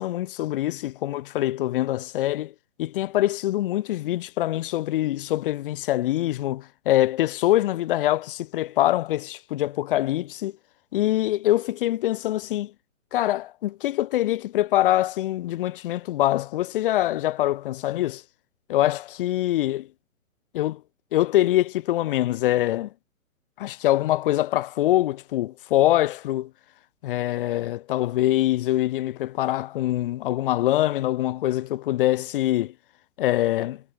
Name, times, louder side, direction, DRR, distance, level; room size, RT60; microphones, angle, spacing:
voice 1, 0.0-2.5 2.8-10.5 10.9-12.7 13.1-18.2 18.7-19.8 20.5-20.8 21.1-22.9 23.6-26.5 27.0-32.7 33.2-33.8, left 14 dB, 40° left, 2.8 m, -24 dB
figure-of-eight pair, 130°, 42 cm